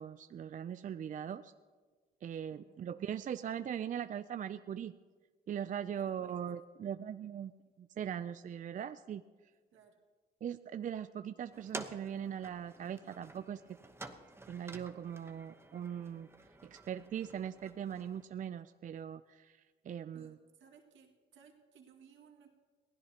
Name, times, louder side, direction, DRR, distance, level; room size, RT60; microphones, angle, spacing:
voice 1, 0.0-1.5 2.2-5.0 5.5-7.5 7.8-9.2 10.4-13.6 14.5-16.3 16.6-20.4, right 9 dB, 40° right, 11 dB, 0.4 m, -40 dB
voice 2, 2.5-2.9 5.9-6.4 9.7-10.0 20.1-22.5, right 7 dB, 75° right, 2 dB, 2.0 m, -61 dB
sound 1, 11.5-18.2, right 2 dB, 10° right, 1.0 m, -50 dB
22.0 x 16.5 x 2.9 m, 1.4 s
cardioid pair, 90°, 20 cm